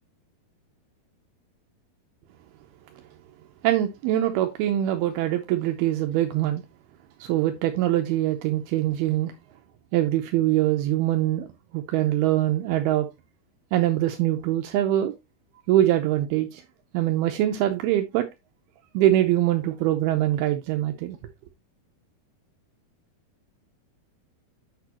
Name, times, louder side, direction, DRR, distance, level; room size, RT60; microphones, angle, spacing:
voice 1, 3.6-6.6 7.2-9.3 9.9-11.5 11.7-13.1 13.7-15.1 15.7-16.6 16.9-18.3 18.9-21.2, right 13 dB, 80° right, 2.6 m, -23 dB
8.2 x 6.6 x 2.9 m
omnidirectional pair, 4.5 m